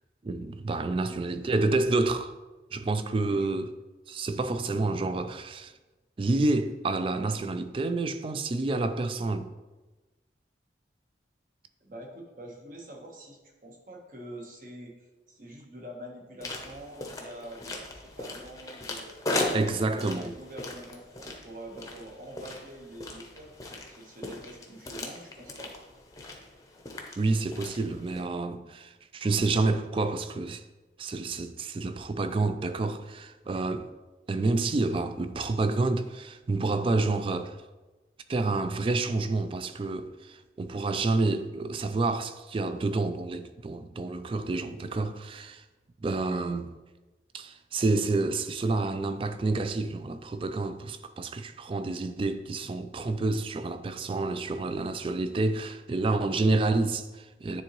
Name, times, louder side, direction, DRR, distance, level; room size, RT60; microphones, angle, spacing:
voice 1, 0.2-2.3 2.7-3.7 4.1-5.7 6.2-9.5 19.5-20.3 27.2-30.6 31.0-33.9 34.3-37.6 38.3-45.6 46.0-46.7 47.3-57.6, right 3 dB, 30° right, 0.3 m, -29 dB
voice 2, 0.9-1.7 3.3-3.6 11.8-19.1 19.7-25.8, right 1 dB, 50° right, 1.1 m, -45 dB
sound 1, 16.4-28.2, left 2 dB, 20° left, 0.7 m, -38 dB
9.5 x 3.8 x 3.0 m
head